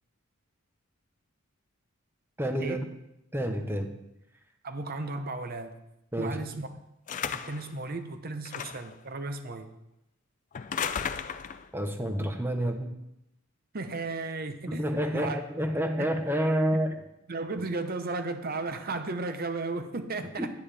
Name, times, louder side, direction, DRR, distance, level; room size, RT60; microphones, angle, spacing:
voice 1, 2.4-2.8 3.3-3.9 6.1-6.4 11.7-13.0 14.7-17.0 20.4-20.5, equal, 10° right, 6 dB, 0.8 m, -29 dB
voice 2, 4.6-5.8 6.2-6.7 7.3-9.7 13.7-15.4 16.0-16.1 17.3-20.5, right 3 dB, 45° right, 8 dB, 0.8 m, -35 dB
sound 1, 7.1-7.7 8.5-9.0 10.5-11.7, left 7 dB, 35° left, 0.4 m, -34 dB
10.5 x 9.5 x 3.4 m, 0.86 s
head